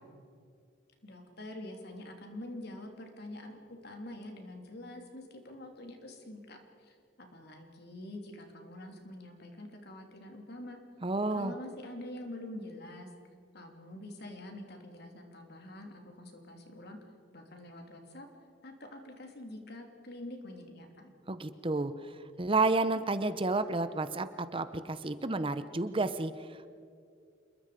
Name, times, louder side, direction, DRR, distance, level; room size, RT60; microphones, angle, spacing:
voice 1, 1.0-10.8 11.3-13.1 13.5-17.0 17.3-18.3 18.6-21.1, left 1 dB, 55° left, 3 dB, 3.2 m, -46 dB
voice 2, 11.0-11.5 21.3-21.9 22.4-26.7, right 3 dB, 30° right, 12 dB, 0.8 m, -31 dB
27.5 x 22.0 x 5.1 m, 2.3 s
head